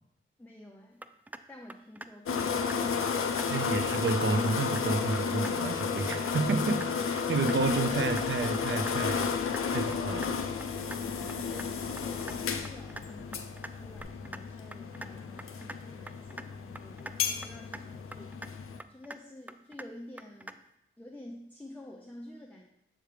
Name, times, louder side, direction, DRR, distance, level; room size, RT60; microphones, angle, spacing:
voice 1, 0.4-1.0 1.5-3.7 11.0-20.5 21.0-22.7, left 1 dB, 5° left, 0 dB, 0.8 m, -50 dB
sound 1, 1.0-1.4 1.7-2.1 2.4-2.8 3.1-3.5 3.8-4.1 4.4-4.8 5.1-5.5 5.8-6.2 6.5-6.9 7.2-7.6 7.9-8.2 8.5-8.9 9.2-9.6 9.9-10.3 10.6-11.0 11.3-11.7 12.0-12.3 12.6-13.0 13.3-13.7 14.0-14.4 14.7-15.1 15.4-15.8 16.1-16.5 16.7-17.2 17.4-17.8 18.1-18.5 18.8-19.2 19.5-19.9 20.2-20.5, right 1 dB, 10° right, 0.3 m, -43 dB
sound 2, 2.3-18.8, left 6 dB, 85° left, 0.5 m, -32 dB
voice 2, 3.5-9.3 9.7-10.4, right 4 dB, 65° right, 7 dB, 0.7 m, -30 dB
sound 3, 7.6-14.0, left 2 dB, 30° left, 1.3 m, -53 dB
7.7 x 3.2 x 5.0 m, 0.83 s
cardioid pair, 60°, 21 cm